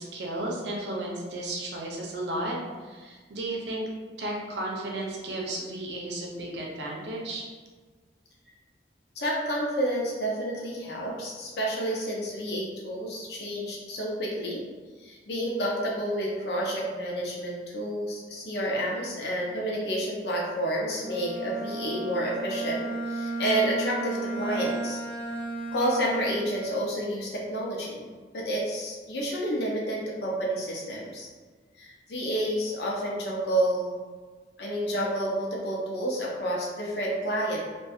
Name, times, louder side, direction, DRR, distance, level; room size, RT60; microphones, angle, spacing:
voice 1, 0.0-3.8 4.2-7.4, right 1 dB, 80° right, -2 dB, 0.6 m, -34 dB
voice 2, 9.1-14.6 15.0-25.0 25.7-31.3 31.8-34.0 34.6-37.6, right 1 dB, 70° left, -3 dB, 0.6 m, -30 dB
Bowed string instrument, 20.9-27.0, right 2 dB, 10° left, 0.6 m, -34 dB
2.6 x 2.3 x 2.3 m, 1.4 s
head